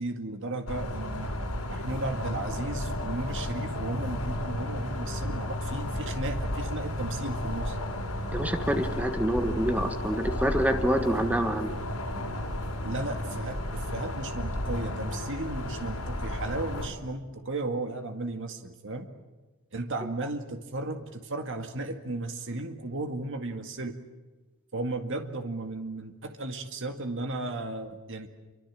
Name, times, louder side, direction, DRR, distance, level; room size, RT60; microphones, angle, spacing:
voice 1, 0.0-1.3 1.7-7.8 12.8-19.1 19.7-24.0 24.7-28.3, right 2 dB, 60° right, 6 dB, 2.0 m, -35 dB
sound 1, 0.7-16.9, left 1 dB, 85° left, 6.3 m, -33 dB
voice 2, 8.3-11.7, right 1 dB, 5° right, 7 dB, 1.5 m, -27 dB
28.5 x 25.0 x 7.6 m, 1.2 s
head